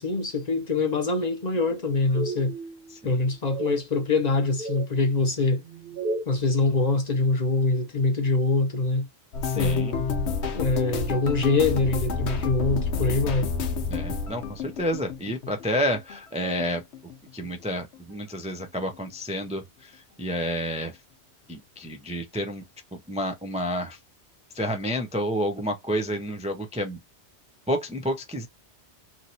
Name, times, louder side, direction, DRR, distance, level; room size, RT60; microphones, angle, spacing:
voice 1, 0.0-2.6 3.0-5.6 6.3-9.1 9.5-10.0 10.5-13.5, left 3 dB, 45° left, 0.7 m, -24 dB
sound 1, 2.1-3.0 3.5-3.8 4.3-4.9 5.6-6.3, right 2 dB, 50° right, 1.3 m, -33 dB
sound 2, 9.3-16.2 16.4-17.5 17.8-18.1 18.4-18.6, left 5 dB, 80° left, 1.0 m, -29 dB
voice 2, 9.4-10.0 13.9-16.8 17.3-20.9 21.5-22.6 23.1-24.0 24.5-27.0 27.7-28.5, equal, 10° right, 0.3 m, -30 dB
3.0 x 2.7 x 2.6 m
omnidirectional pair, 1.1 m